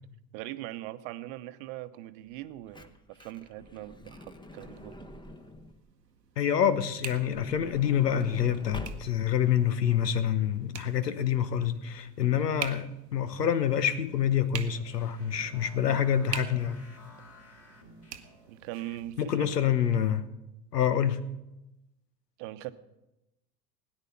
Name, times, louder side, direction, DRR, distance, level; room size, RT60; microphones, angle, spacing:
voice 1, 0.3-5.0 15.8-16.0 18.5-19.5 22.4-22.7, right 15 dB, 50° right, 12 dB, 1.0 m, -41 dB
Truck / Door, 2.3-5.9 6.9-9.4 10.1-10.2 10.4-10.6, left 1 dB, 10° left, 1.0 m, -45 dB
sound 1, 4.6-19.7, right 8 dB, 85° right, 1.0 m, -46 dB
voice 2, 6.4-16.8 19.2-20.3 20.7-21.2, left 9 dB, 80° left, 14 dB, 1.0 m, -27 dB
sound 2, 14.1-18.6, left 1 dB, 30° left, 3.4 m, -54 dB
17.5 x 9.9 x 5.8 m, 0.94 s
figure-of-eight pair, 75°, 48 cm